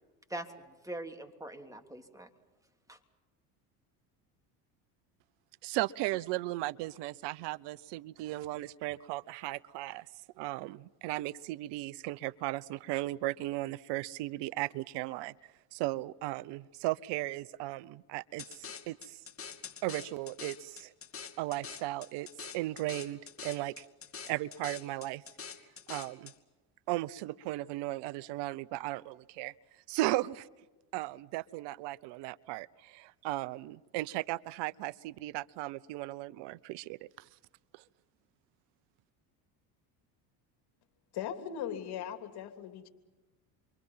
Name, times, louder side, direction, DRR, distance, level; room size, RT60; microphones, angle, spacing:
voice 1, 0.3-2.3 2.9-3.0, right 1 dB, 5° right, 4 dB, 3.2 m, -43 dB
voice 2, 5.6-10.0 10.4-15.3 15.7-19.2 19.8-20.9 21.4-22.3 22.5-23.8 24.3-25.2 25.9-26.3 26.9-29.5 29.9-30.5 30.9-37.0, right 18 dB, 70° right, 19 dB, 0.8 m, -36 dB
sound 1, 18.4-26.4, left 6 dB, 30° left, 2.5 m, -46 dB
voice 3, 41.1-42.9, left 9 dB, 60° left, 6 dB, 3.2 m, -39 dB
28.5 x 24.0 x 5.7 m, 1.1 s
supercardioid pair, 85°, 44 cm